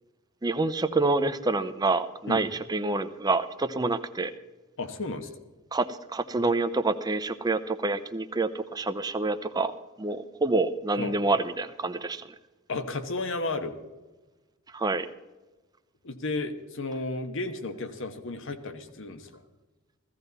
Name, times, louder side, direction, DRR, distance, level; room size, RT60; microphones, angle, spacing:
voice 1, 0.4-4.3 5.7-9.7 10.0-12.2 14.7-15.1, right 3 dB, 20° right, 10 dB, 0.6 m, -27 dB
voice 2, 4.8-5.3 11.0-11.2 12.7-13.8 16.0-19.4, left 2 dB, 65° left, 9 dB, 1.2 m, -33 dB
16.0 x 14.5 x 4.0 m, 1.1 s
head